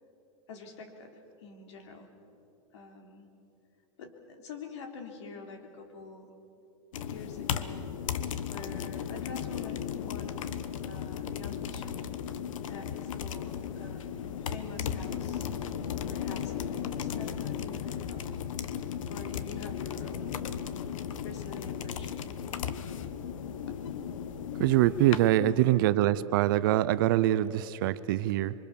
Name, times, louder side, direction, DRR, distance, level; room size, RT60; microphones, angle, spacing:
voice 1, 0.5-2.1 2.7-3.3 4.0-6.3 7.0-7.8 8.5-10.4 10.8-12.1 12.7-15.5 16.0-18.4 19.1-20.5 21.2-22.3 23.7-23.8 25.3-25.8, left 4 dB, 65° left, 3.4 m, -45 dB
sound 1, 6.9-25.3, left 8 dB, 80° left, 1.3 m, -36 dB
voice 2, 24.6-28.5, right 14 dB, 40° right, 0.6 m, -24 dB
26.5 x 24.0 x 7.0 m
supercardioid pair, 175°, 16 cm